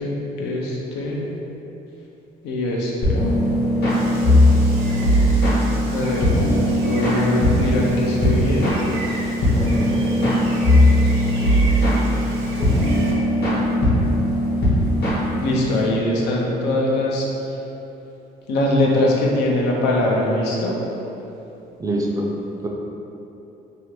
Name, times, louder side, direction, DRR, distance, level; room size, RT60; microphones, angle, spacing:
voice 1, 0.0-1.3 2.4-3.2 5.9-6.3 6.8-8.7 15.4-17.3 18.5-20.8, left 1 dB, 85° left, -3 dB, 0.6 m, -22 dB
sound 1, 3.0-15.8, equal, 65° left, 1.1 m, -19 dB
Gull seagull, 3.9-13.1, right 2 dB, 80° right, 0.6 m, -35 dB
voice 2, 9.7-10.4 12.6-12.7 21.8-22.3 22.6-22.7, right 1 dB, 20° right, -2 dB, 0.4 m, -27 dB
2.8 x 2.5 x 3.2 m, 2.9 s
cardioid pair, 110°, 17 cm